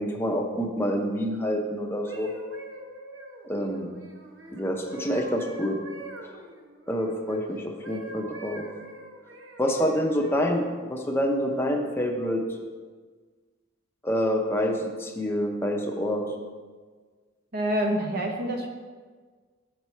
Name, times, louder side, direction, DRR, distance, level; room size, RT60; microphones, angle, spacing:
voice 1, 0.0-2.3 3.4-3.9 4.5-5.8 6.2-6.4 6.9-8.6 9.6-12.4 14.0-16.2, equal, 10° left, 0 dB, 0.7 m, -27 dB
sound 1, 1.8-7.4 7.8-10.7 11.4-11.6, right 2 dB, 80° right, 0.9 m, -44 dB
voice 2, 17.5-18.7, right 1 dB, 50° right, 2 dB, 1.0 m, -27 dB
7.3 x 4.6 x 5.5 m, 1.5 s
head